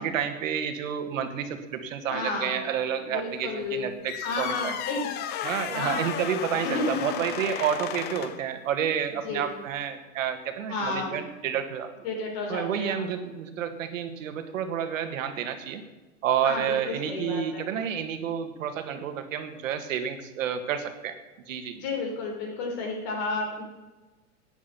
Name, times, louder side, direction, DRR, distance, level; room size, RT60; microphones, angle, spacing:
voice 1, 0.0-4.7 5.4-11.9 12.5-15.8 16.2-21.1 21.5-21.8, right 8 dB, 75° right, 8 dB, 1.8 m, -30 dB
voice 2, 2.1-2.6 3.0-3.9 4.2-5.1 5.7-6.1 6.5-7.7 9.2-9.5 10.7-11.2 12.0-13.1 16.4-17.7 21.7-23.6, left 3 dB, 50° left, 1 dB, 4.1 m, -32 dB
sound 1, 4.0-8.5, left 10 dB, 25° left, 0.6 m, -34 dB
12.0 x 9.4 x 5.8 m, 1.2 s
hypercardioid pair, 135°, 40 cm